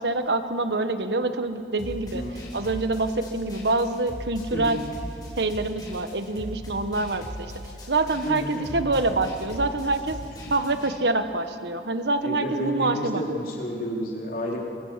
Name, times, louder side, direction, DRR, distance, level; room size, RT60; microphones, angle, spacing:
voice 1, 0.0-2.2 2.5-4.8 5.4-7.5 7.9-10.2 10.5-13.2, right 2 dB, 70° right, 9 dB, 1.3 m, -26 dB
sound 1, 1.8-10.9, equal, 25° left, 3.6 m, -39 dB
voice 2, 2.1-2.5 4.5-4.8 8.2-8.8 10.2-10.3 12.2-14.6, equal, 50° left, -2 dB, 4.1 m, -31 dB
24.0 x 23.5 x 7.5 m, 2.7 s
head